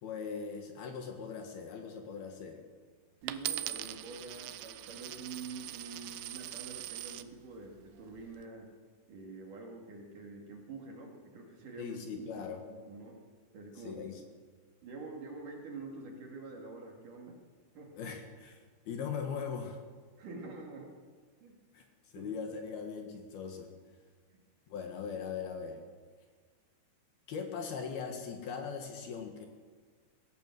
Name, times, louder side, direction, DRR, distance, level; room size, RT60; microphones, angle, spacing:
voice 1, 0.0-2.6 11.8-12.6 13.8-14.2 18.0-19.8 21.7-21.9 22.1-23.7 24.7-25.8 27.3-29.5, left 6 dB, 65° left, 4 dB, 3.3 m, -40 dB
voice 2, 3.2-8.7 9.1-13.2 13.5-14.1 14.8-17.4 17.8-18.0 20.2-20.9 21.4-21.6 22.2-22.3 24.3-24.4, right 3 dB, 50° right, 0 dB, 3.7 m, -46 dB
Coin (dropping), 3.3-7.3 8.0-8.4, right 14 dB, 80° right, 2.7 m, -41 dB
19.5 x 17.5 x 7.8 m, 1.5 s
omnidirectional pair, 5.3 m